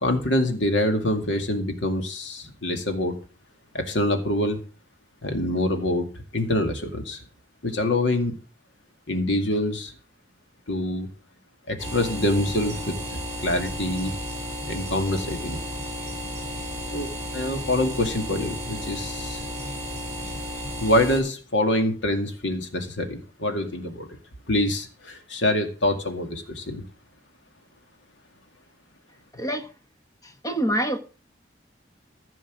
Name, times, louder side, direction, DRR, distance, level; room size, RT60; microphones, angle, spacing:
voice 1, 0.0-3.1 3.7-4.6 5.2-6.1 6.3-7.2 7.6-8.3 9.1-9.9 10.7-11.1 11.7-14.1 14.7-15.6 16.9-19.4 20.8-24.1 24.5-26.8, left 1 dB, 75° left, 2.3 m, -25 dB
sound 1, 11.8-21.2, equal, 15° right, 6.0 m, -33 dB
voice 2, 29.3-29.7 30.2-31.0, right 1 dB, 20° left, 1.4 m, -26 dB
15.0 x 6.2 x 6.3 m
head